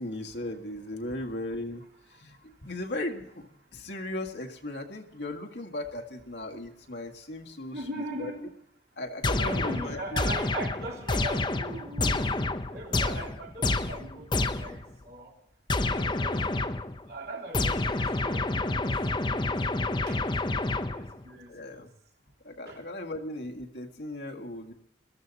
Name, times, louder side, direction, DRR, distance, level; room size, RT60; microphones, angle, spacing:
voice 1, 0.0-1.8 2.2-8.3 9.0-10.3 21.5-21.9 22.4-24.7, left 1 dB, 65° left, 2 dB, 1.8 m, -37 dB
voice 2, 2.3-2.7 7.7-8.4 9.4-12.4 12.7-15.3 15.8-16.4 17.0-20.2 20.9-21.9 22.7-22.8, right 1 dB, 55° right, -1 dB, 3.4 m, -40 dB
sound 1, 9.2-14.9 15.7-17.0 17.5-21.2, left 2 dB, 25° left, 0.7 m, -28 dB
22.0 x 14.0 x 4.1 m, 0.72 s
head